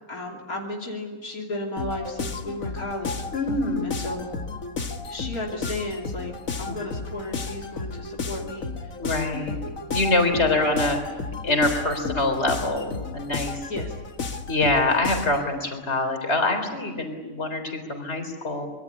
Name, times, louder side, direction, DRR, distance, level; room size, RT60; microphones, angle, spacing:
voice 1, 0.1-3.1 3.8-4.4 5.0-6.3 6.6-8.7 10.1-10.4 13.7-13.9, left 1 dB, 85° left, 0 dB, 3.4 m, -34 dB
sound 1, 1.8-15.5, left 4 dB, 70° left, 2.2 m, -33 dB
voice 2, 3.3-3.9 6.7-6.8 9.0-9.6 9.9-13.6 14.5-18.7, left 2 dB, 50° left, 5 dB, 4.3 m, -25 dB
25.0 x 22.5 x 9.8 m, 1.2 s
omnidirectional pair, 1.5 m